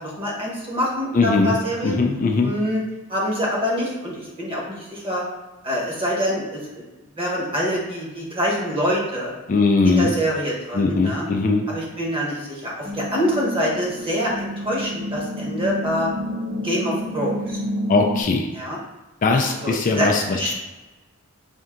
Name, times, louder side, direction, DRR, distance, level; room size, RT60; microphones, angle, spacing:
voice 1, 0.0-2.0 2.4-2.8 3.1-5.2 5.6-6.8 7.2-9.3 9.8-11.2 11.7-16.1 16.6-17.6 18.5-18.8 19.6-20.5, equal, 25° right, -4 dB, 1.0 m, -25 dB
voice 2, 1.1-1.6 1.8-2.5 9.5-10.1 10.7-11.7 17.9-18.5 19.2-20.5, left 3 dB, 35° left, 2 dB, 0.3 m, -20 dB
sound 1, 12.8-18.2, equal, 60° right, 1.0 m, -30 dB
4.3 x 2.7 x 3.7 m, 1.1 s
head